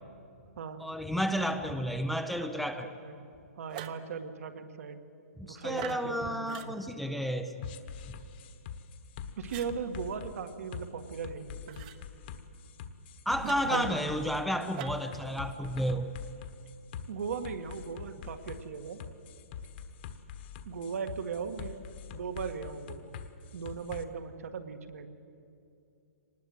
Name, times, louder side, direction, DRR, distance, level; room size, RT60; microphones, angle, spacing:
voice 1, 0.8-2.9 5.4-7.7 13.3-16.1, equal, ahead, 7 dB, 0.5 m, -32 dB
voice 2, 2.4-3.2 3.6-5.0 5.4-6.7 9.4-11.9 13.7-13.9 17.1-19.0 20.7-21.8 22.1-23.1 23.5-25.1, right 6 dB, 65° right, 7 dB, 1.9 m, -38 dB
sound 1, 3.7-4.1 5.7-6.1 6.5-6.7 9.5-9.7 11.7-12.0 13.4-14.1 14.7-15.1, right 10 dB, 35° right, 1.0 m, -42 dB
sound 2, 7.6-24.0, left 7 dB, 40° left, 1.3 m, -44 dB
24.0 x 20.0 x 8.0 m, 2.6 s
hypercardioid pair, 165°, 8 cm